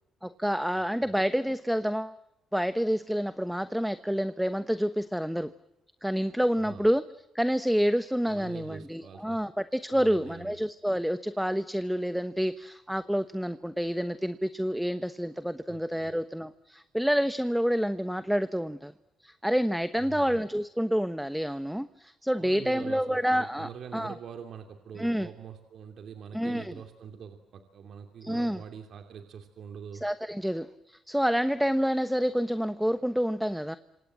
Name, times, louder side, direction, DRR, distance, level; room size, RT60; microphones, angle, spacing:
voice 1, 0.2-2.1 2.5-5.5 6.0-7.0 7.3-18.9 19.2-24.1 25.0-25.3 26.3-26.8 28.2-28.6 30.0-33.8, equal, ahead, 12 dB, 1.1 m, -28 dB
voice 2, 0.7-1.1 6.5-6.9 8.3-9.4 9.9-10.6 15.7-16.1 20.0-20.4 22.4-30.0, right 7 dB, 65° right, 6 dB, 2.9 m, -44 dB
28.0 x 27.0 x 7.6 m, 0.90 s
cardioid pair, 90°, 0 cm